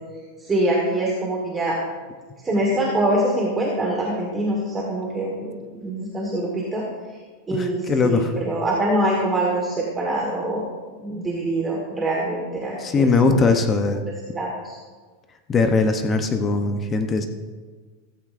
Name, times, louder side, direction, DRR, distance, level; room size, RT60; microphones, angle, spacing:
voice 1, 0.4-1.8 2.4-7.2 7.5-10.6 10.9-13.5 14.3-14.8, right 1 dB, 10° right, -3 dB, 1.4 m, -24 dB
voice 2, 7.5-8.3 12.8-14.0 15.5-17.3, left 4 dB, 15° left, 6 dB, 0.7 m, -20 dB
15.5 x 14.5 x 2.5 m, 1.4 s
supercardioid pair, 175°, 0 cm